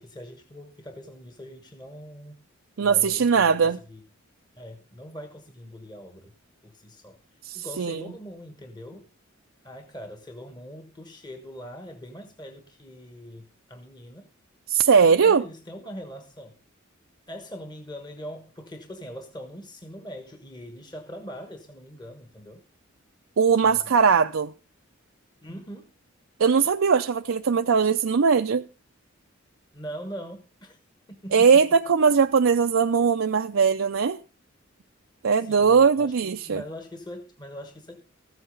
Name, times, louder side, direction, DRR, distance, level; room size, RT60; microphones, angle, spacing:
voice 1, 0.0-2.4 2.8-4.0 4.5-6.3 6.6-7.2 7.5-9.1 9.6-14.3 15.0-16.6 17.3-22.6 23.6-24.0 25.4-25.9 29.7-30.8 31.1-31.6 35.4-38.0, equal, 20° left, 1.3 m, -42 dB
voice 2, 2.8-3.8 7.4-8.0 14.7-15.4 23.4-24.5 26.4-28.6 31.3-34.2 35.2-36.6, right 6 dB, 75° right, 0.5 m, -20 dB
14.5 x 8.1 x 5.3 m
head